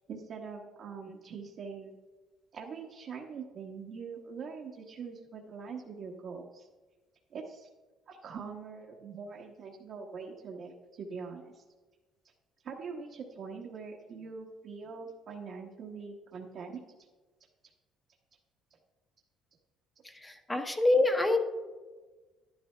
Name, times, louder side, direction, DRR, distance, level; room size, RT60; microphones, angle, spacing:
voice 1, 0.1-2.0 2.5-6.7 7.3-7.7 8.1-11.6 12.6-16.8, right 5 dB, 50° right, -1 dB, 1.2 m, -43 dB
voice 2, 20.1-21.4, left 2 dB, 10° left, 5 dB, 0.9 m, -26 dB
11.0 x 11.0 x 3.3 m, 1.3 s
cardioid pair, 135°, 0 cm